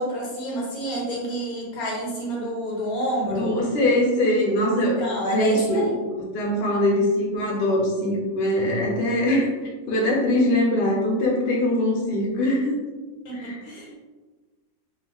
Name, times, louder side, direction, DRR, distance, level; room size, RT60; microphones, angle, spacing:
voice 1, 0.0-3.6 4.8-6.0 13.2-14.0, right 1 dB, 85° left, -3 dB, 1.3 m, -29 dB
voice 2, 3.3-5.0 5.3-5.8 6.2-9.5 9.9-12.8 13.3-13.6, left 1 dB, 55° left, -3 dB, 0.8 m, -22 dB
2.5 x 2.4 x 2.9 m, 1.3 s
omnidirectional pair, 1.5 m